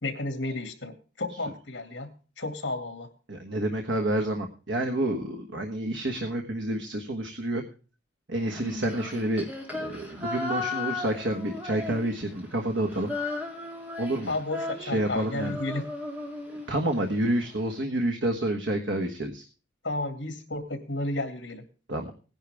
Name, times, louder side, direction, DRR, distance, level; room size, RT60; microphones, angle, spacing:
voice 1, 0.0-2.1 2.4-3.1 14.3-15.8 19.8-21.6, left 2 dB, 70° left, 7 dB, 2.3 m, -32 dB
voice 2, 3.3-7.6 8.3-9.4 9.8-13.1 14.0-14.3 14.8-15.6 16.7-19.4 21.9-22.1, right 1 dB, 70° right, 4 dB, 1.4 m, -29 dB
Female singing, 8.5-12.4 12.7-17.0, left 2 dB, 10° right, 3.1 m, -35 dB
18.5 x 10.5 x 3.5 m, 0.37 s
head